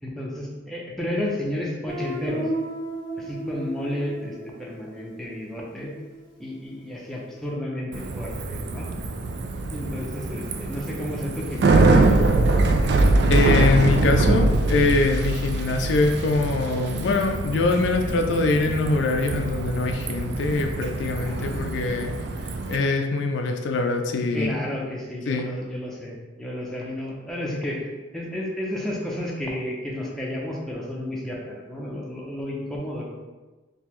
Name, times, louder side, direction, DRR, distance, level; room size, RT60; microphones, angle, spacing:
voice 1, 0.0-2.5 3.2-5.9 6.4-8.9 9.7-12.0 21.2-21.5 24.3-27.8 28.1-33.1, left 1 dB, ahead, -4 dB, 0.6 m, -32 dB
Guitar, 1.9-6.5, right 1 dB, 20° right, 1.2 m, -34 dB
Bicycle, 7.9-22.8, right 2 dB, 60° right, 0.3 m, -23 dB
voice 2, 13.3-22.1 22.7-24.5 25.3-25.5, left 3 dB, 70° left, 4 dB, 0.4 m, -23 dB
3.6 x 2.8 x 3.1 m, 1.2 s
head